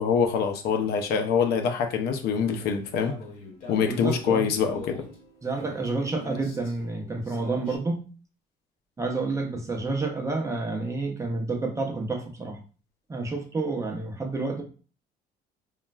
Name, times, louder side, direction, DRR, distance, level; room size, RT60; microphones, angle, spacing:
voice 1, 0.0-3.1 3.7-5.0, left 6 dB, 70° left, 0.5 m, -25 dB
sound 1, 2.8-7.8, left 2 dB, 50° left, 1.0 m, -43 dB
voice 2, 3.8-4.5 5.4-8.1 9.0-12.6 13.1-14.6, right 3 dB, 15° right, 0.6 m, -29 dB
3.0 x 2.3 x 2.3 m
cardioid pair, 110°, 17 cm